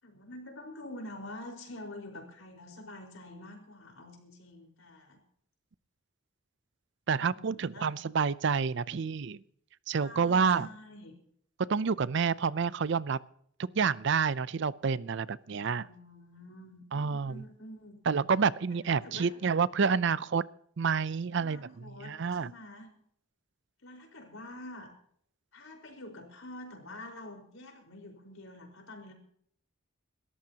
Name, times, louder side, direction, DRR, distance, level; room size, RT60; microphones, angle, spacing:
voice 1, 0.0-5.2 7.1-7.9 8.8-9.0 9.9-11.1 15.6-18.0 18.7-19.4 21.3-22.9 23.8-24.9 25.5-29.1, left 1 dB, 80° left, 1 dB, 4.7 m, -47 dB
voice 2, 7.1-9.4 9.9-10.7 11.7-13.2 13.6-15.8 16.9-17.4 18.1-20.4 20.8-21.7 22.0-22.5, right 5 dB, 60° right, 19 dB, 0.5 m, -28 dB
27.5 x 14.0 x 2.9 m, 0.65 s
head